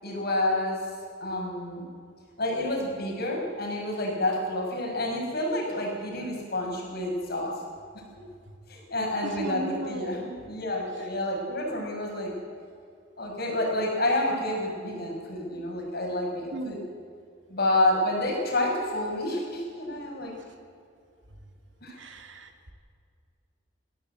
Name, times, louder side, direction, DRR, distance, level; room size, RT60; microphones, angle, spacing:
voice 1, 0.0-0.8 1.2-1.9 2.4-7.5 8.7-12.3 13.2-16.8 17.5-20.3 21.8-22.0, left 1 dB, 50° left, 0 dB, 6.1 m, -29 dB
voice 2, 9.2-10.2 16.5-16.8 22.0-22.7, right 1 dB, 65° right, 6 dB, 2.2 m, -36 dB
22.5 x 16.0 x 8.0 m, 2.3 s
head